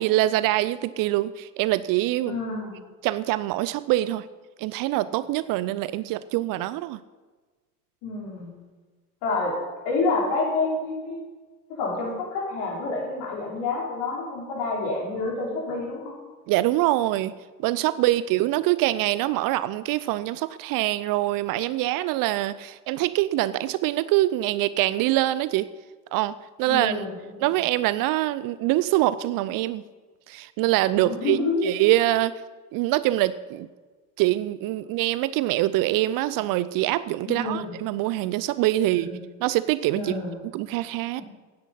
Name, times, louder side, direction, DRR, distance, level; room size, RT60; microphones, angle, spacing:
voice 1, 0.0-2.4 3.0-4.3 4.6-7.0 16.5-17.3 17.6-25.7 26.1-27.0 27.4-29.8 30.3-32.4 32.7-33.7 34.2-39.1 39.4-40.2 40.5-41.2, right 16 dB, 45° right, 16 dB, 0.6 m, -24 dB
voice 2, 2.3-2.7 8.0-8.5 9.2-9.5 9.8-11.2 11.8-16.2 26.7-27.5 31.0-31.8 37.3-37.7 39.0-39.2 39.9-40.4, left 3 dB, 55° left, -3 dB, 5.5 m, -28 dB
15.5 x 10.5 x 5.7 m, 1.3 s
figure-of-eight pair, 70°, 49 cm